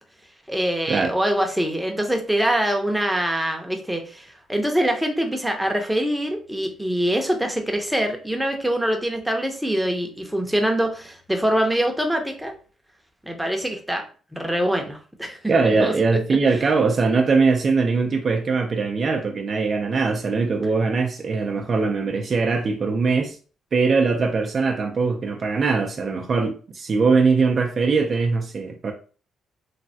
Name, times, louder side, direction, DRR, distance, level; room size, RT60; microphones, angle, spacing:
voice 1, 0.5-12.5 13.2-14.1 14.3-15.4 15.6-15.9, right 1 dB, 5° right, 0.6 m, -24 dB
voice 2, 15.5-23.4 23.7-28.9, right 4 dB, 45° right, 0.4 m, -21 dB
3.2 x 2.2 x 2.7 m
cardioid pair, 90°, 0 cm